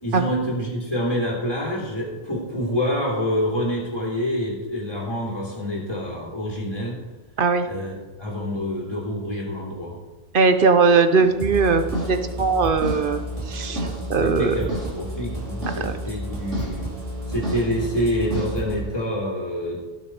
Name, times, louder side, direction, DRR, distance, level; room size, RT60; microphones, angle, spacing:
voice 1, 0.0-7.0 7.7-10.0 13.9-16.9 17.3-19.8, equal, 20° left, -3 dB, 3.0 m, -27 dB
voice 2, 10.3-11.8 12.1-13.2 13.5-14.5 15.8-15.9, right 4 dB, 50° right, 8 dB, 1.0 m, -19 dB
sound 1, 11.2-19.0, right 1 dB, 80° right, 3.6 m, -35 dB
sound 2, 11.4-18.8, right 1 dB, 30° right, 2.3 m, -32 dB
17.5 x 6.3 x 4.4 m, 1.2 s
omnidirectional pair, 1.2 m